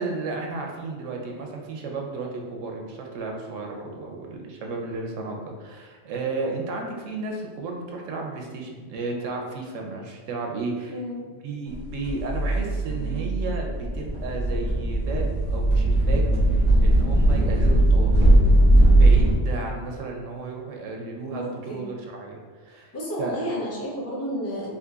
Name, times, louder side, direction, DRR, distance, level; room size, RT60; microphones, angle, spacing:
voice 1, 0.0-11.0 11.4-18.3 18.9-22.9 23.2-23.5, right 3 dB, 80° right, 1 dB, 0.9 m, -33 dB
voice 2, 10.9-11.2 21.3-21.9 22.9-24.7, equal, 20° left, -4 dB, 0.5 m, -31 dB
sound 1, 11.7-19.3, right 1 dB, 80° left, 1.4 m, -19 dB
3.7 x 2.7 x 2.3 m, 1.4 s
omnidirectional pair, 1.3 m